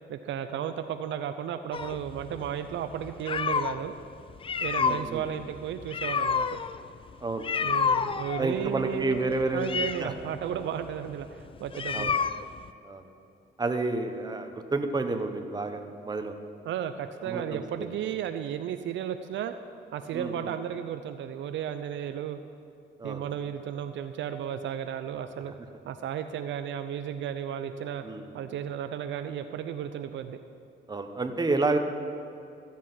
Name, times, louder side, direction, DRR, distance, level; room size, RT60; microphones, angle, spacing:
voice 1, 0.1-3.9 4.6-6.6 7.6-9.2 9.5-12.1 16.6-19.5 19.9-22.4 23.0-25.5 25.9-28.1 28.3-30.4, right 9 dB, 70° right, 9 dB, 0.5 m, -34 dB
sound 1, 1.7-3.8 4.3-12.7, left 6 dB, 25° left, 0.3 m, -29 dB
voice 2, 4.8-5.2 7.2-7.7 8.4-9.7 10.0-10.1 11.9-12.1 12.8-13.1 13.6-16.3 17.2-17.9 20.1-20.5 23.0-23.2 28.0-28.4 30.9-31.8, right 3 dB, 20° right, 6 dB, 1.0 m, -30 dB
14.0 x 7.4 x 5.7 m, 2.7 s
cardioid pair, 90°, 20 cm